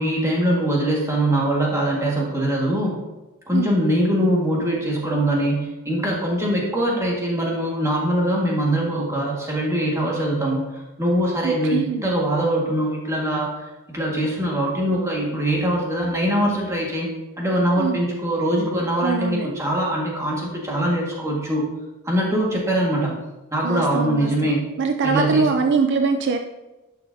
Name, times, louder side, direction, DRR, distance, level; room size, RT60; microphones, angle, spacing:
voice 1, 0.0-3.0 3.5-21.7 22.0-23.1 23.5-24.6 25.0-25.5, right 1 dB, 15° right, -3 dB, 1.7 m, -22 dB
voice 2, 11.4-12.1 17.8-18.0 19.0-19.5 23.6-24.5 24.8-26.4, right 4 dB, 55° right, 6 dB, 0.4 m, -22 dB
11.0 x 5.9 x 2.7 m, 1.1 s
head